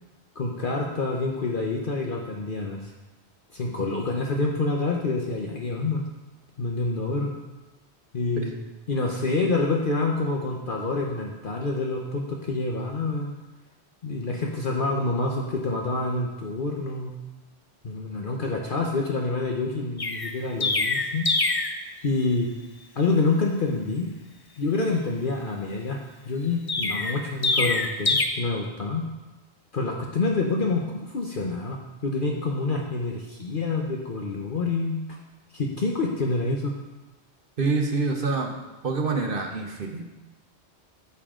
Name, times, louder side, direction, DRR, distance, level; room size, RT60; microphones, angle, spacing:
voice 1, 0.3-2.9 3.5-6.0 6.6-7.3 8.1-8.6 8.9-13.3 14.0-17.1 17.8-21.3 22.0-22.5 23.0-24.1 24.6-29.1 29.7-35.0 35.5-36.7, left 3 dB, 55° left, 0 dB, 1.1 m, -27 dB
Chirp tweet, 20.0-21.8 26.7-28.3, left 3 dB, 30° left, 0.5 m, -24 dB
voice 2, 37.6-38.5 38.8-40.0, right 3 dB, 55° right, 3 dB, 1.1 m, -26 dB
12.0 x 7.1 x 3.7 m, 1.1 s
omnidirectional pair, 1.1 m